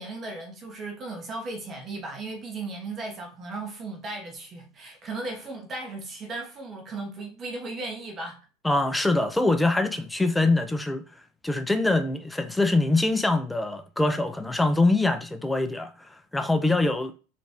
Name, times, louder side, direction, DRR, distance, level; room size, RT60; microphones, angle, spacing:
voice 1, 0.0-8.4, right 2 dB, 35° right, 1.2 m, -36 dB
voice 2, 8.6-11.0 11.4-17.1, left 2 dB, 5° left, 0.5 m, -24 dB
4.1 x 3.2 x 3.4 m
hypercardioid pair, 100°, 0 cm